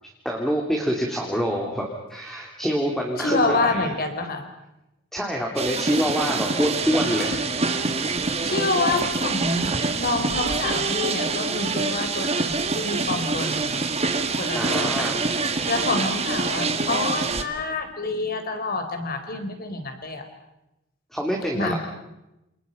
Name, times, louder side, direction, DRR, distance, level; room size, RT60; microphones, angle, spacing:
voice 1, 0.2-3.9 5.1-7.4 14.5-15.1 21.1-21.8, equal, ahead, -1 dB, 3.2 m, -26 dB
voice 2, 3.2-4.4 6.8-7.3 8.4-13.8 14.4-15.2 15.7-20.3 21.5-21.8, left 3 dB, 45° left, 6 dB, 4.0 m, -27 dB
sound 1, 5.6-17.4, right 4 dB, 30° right, 1.9 m, -26 dB
29.0 x 29.0 x 5.4 m, 0.91 s
head